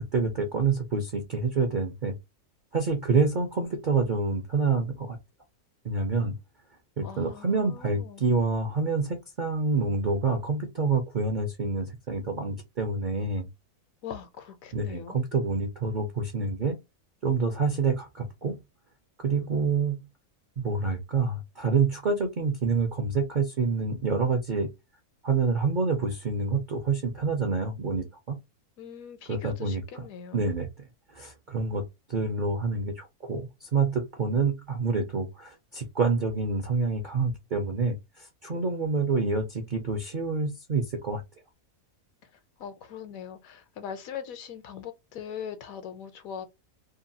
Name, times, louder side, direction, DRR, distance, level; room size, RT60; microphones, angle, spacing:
voice 1, 0.0-2.1 2.7-5.2 5.8-6.3 7.0-13.5 14.7-16.7 17.2-18.6 19.2-19.9 20.6-24.7 25.2-28.4 29.3-29.8 30.3-30.7 31.1-41.2, right 4 dB, 55° right, 0.5 m, -27 dB
voice 2, 7.0-8.2 14.0-15.2 28.8-30.5 42.6-46.5, left 8 dB, 70° left, 1.0 m, -41 dB
2.8 x 2.3 x 2.6 m
omnidirectional pair, 1.6 m